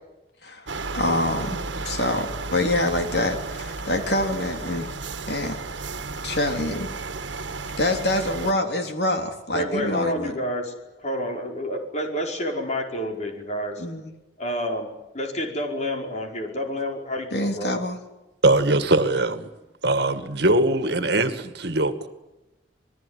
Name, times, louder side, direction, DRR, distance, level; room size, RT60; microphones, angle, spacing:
sound 1, 0.7-8.5, right 3 dB, 90° right, 1.5 m, -33 dB
voice 1, 0.9-1.6 1.8-4.9 5.3-5.6 6.2-6.9 7.8-10.3 13.8-14.0 17.3-18.0, left 1 dB, 60° left, 3.4 m, -25 dB
voice 2, 9.5-13.8 14.4-14.9 15.1-17.7, equal, 40° left, 5.2 m, -29 dB
voice 3, 18.4-19.5 19.8-22.1, right 2 dB, 60° right, 2.1 m, -21 dB
27.0 x 20.5 x 9.9 m
head